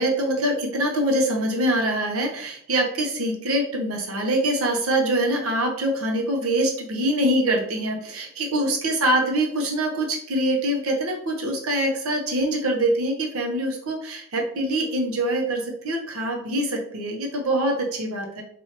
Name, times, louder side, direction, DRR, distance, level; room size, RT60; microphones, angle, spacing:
voice 1, 0.0-18.4, right 1 dB, 85° right, 0 dB, 0.9 m, -24 dB
4.4 x 2.6 x 2.9 m, 0.65 s
head